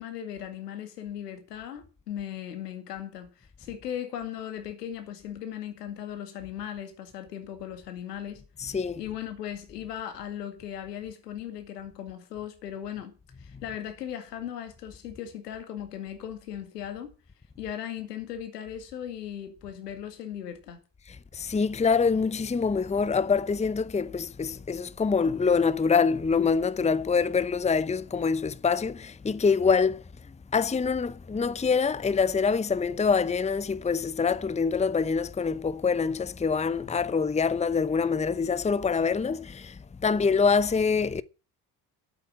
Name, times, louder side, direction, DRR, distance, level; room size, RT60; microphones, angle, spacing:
voice 1, 0.0-17.1 17.6-20.8, left 10 dB, 85° left, 2.3 m, -38 dB
voice 2, 8.6-9.0 21.3-30.0 30.5-41.2, left 5 dB, 15° left, 0.8 m, -25 dB
11.5 x 8.6 x 8.5 m
hypercardioid pair, 55°, 47 cm